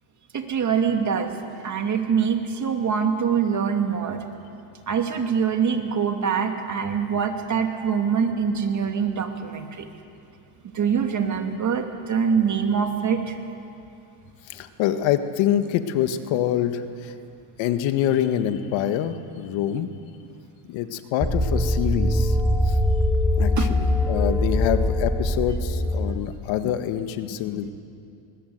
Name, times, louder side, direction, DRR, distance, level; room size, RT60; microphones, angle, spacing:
voice 1, 0.3-1.3 1.6-4.2 4.9-9.9 10.7-13.4 23.6-23.7, right 6 dB, 35° right, 4 dB, 2.6 m, -24 dB
voice 2, 14.5-17.1 17.6-19.9 20.6-22.4 22.6-22.8 23.4-27.7, left 10 dB, 70° left, 9 dB, 1.7 m, -25 dB
sound 1, 21.2-26.2, left 1 dB, 5° right, 2.5 m, -22 dB
22.0 x 20.0 x 8.1 m, 2.5 s
supercardioid pair, 100°, 47 cm